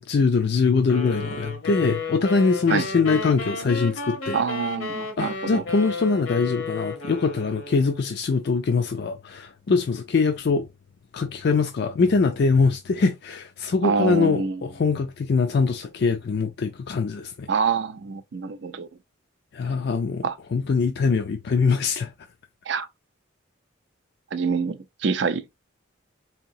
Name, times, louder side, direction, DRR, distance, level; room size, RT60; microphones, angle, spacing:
voice 1, 0.0-4.4 5.2-10.7 11.1-17.5 19.5-22.1, left 4 dB, 50° left, 0.4 m, -23 dB
sound 1, 0.9-8.1, left 3 dB, 75° left, 1.0 m, -32 dB
voice 2, 4.3-5.6 13.8-14.7 17.5-18.9 20.2-20.4 22.7-22.9 24.3-25.5, right 5 dB, 60° right, 0.4 m, -26 dB
3.8 x 2.9 x 2.6 m
head